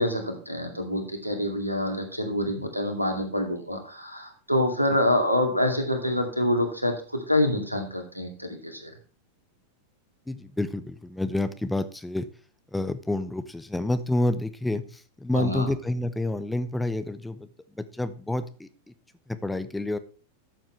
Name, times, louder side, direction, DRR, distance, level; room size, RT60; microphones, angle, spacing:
voice 1, 0.0-8.9 15.3-15.7, left 1 dB, 90° right, 4 dB, 2.4 m, -26 dB
voice 2, 10.3-12.3 12.7-17.5 17.8-18.9 19.3-20.0, left 1 dB, 5° left, 11 dB, 0.8 m, -29 dB
13.5 x 7.4 x 3.3 m, 0.39 s
figure-of-eight pair, 90°, 0 cm